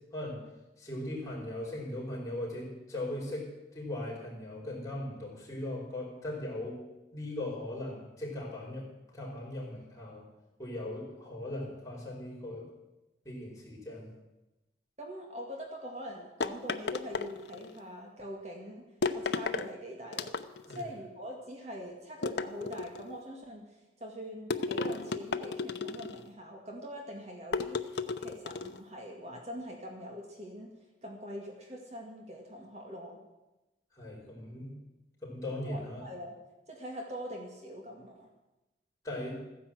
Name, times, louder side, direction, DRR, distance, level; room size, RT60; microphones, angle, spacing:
voice 1, 0.8-6.8 7.1-10.2 10.6-12.7 13.2-14.1 20.7-20.9 33.9-34.7 35.2-36.1 39.0-39.4, left 1 dB, 20° left, -4 dB, 4.8 m, -39 dB
voice 2, 15.0-18.8 19.1-20.3 20.7-23.7 24.0-30.7 31.0-33.2 35.6-36.4 36.7-38.3, equal, 40° right, 1 dB, 2.0 m, -43 dB
sound 1, 16.4-17.8 19.0-19.7 20.1-20.8 22.2-23.1 24.5-26.3 27.5-28.8, left 4 dB, 80° left, 0.8 m, -34 dB
14.5 x 10.5 x 7.7 m, 1.0 s
head